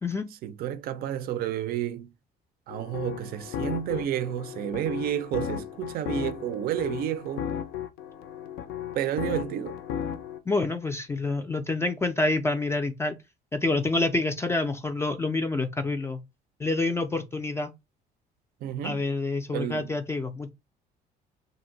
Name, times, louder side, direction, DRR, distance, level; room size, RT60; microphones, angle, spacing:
voice 1, 0.4-2.1 2.7-7.5 8.9-9.8 18.6-19.0 19.5-19.9, right 11 dB, 60° right, 0.4 m, -31 dB
sound 1, 2.7-10.4, left 9 dB, 85° left, 0.4 m, -35 dB
voice 2, 10.5-13.2 13.5-16.2 16.6-17.7 18.8-20.5, left 2 dB, 15° left, 0.3 m, -27 dB
2.6 x 2.0 x 3.8 m
cardioid pair, 110°, 17 cm